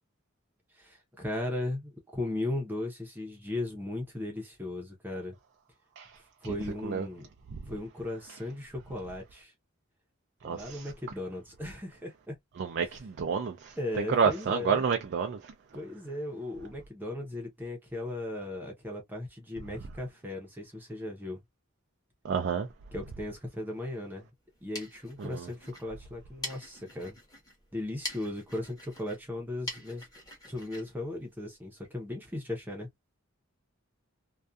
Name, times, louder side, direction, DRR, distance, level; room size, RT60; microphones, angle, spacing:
voice 1, 0.7-5.4 6.4-7.2 7.7-9.5 10.4-12.4 13.8-14.8 15.7-21.4 22.9-24.3 24.6-27.2 27.7-30.1 30.5-32.9, left 1 dB, 10° right, 0.7 m, -37 dB
voice 2, 10.4-10.9 12.6-15.5 22.2-22.7 25.2-25.5, right 6 dB, 55° right, 0.4 m, -30 dB
sound 1, 24.4-31.9, left 1 dB, 20° left, 1.0 m, -45 dB
2.6 x 2.3 x 2.3 m
head